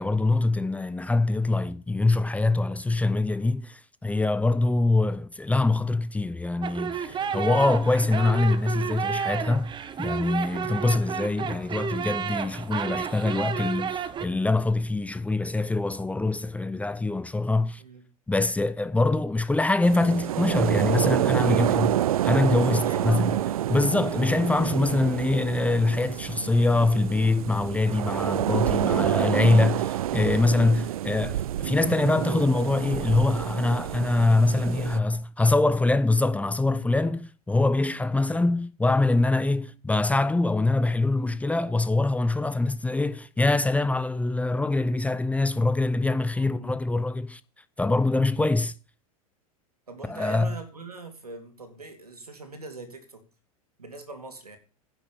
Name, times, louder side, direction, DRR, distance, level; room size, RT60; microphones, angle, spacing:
voice 1, 0.0-9.7 10.0-17.8 18.3-21.9 22.2-23.3 23.7-47.4 47.8-48.7 50.1-50.5, left 2 dB, 5° left, 0.7 m, -24 dB
sound 1, 6.6-14.3, right 7 dB, 25° right, 1.2 m, -31 dB
voice 2, 7.1-7.4 10.5-10.7 17.8-18.0 21.3-21.7 22.5-23.5 34.6-35.1 37.0-37.1 46.3-46.7 49.9-53.3 53.8-54.6, right 3 dB, 90° right, 2.9 m, -42 dB
sound 2, 19.8-35.0, right 12 dB, 70° right, 0.4 m, -28 dB
10.5 x 6.8 x 6.9 m
figure-of-eight pair, 90°, 19 cm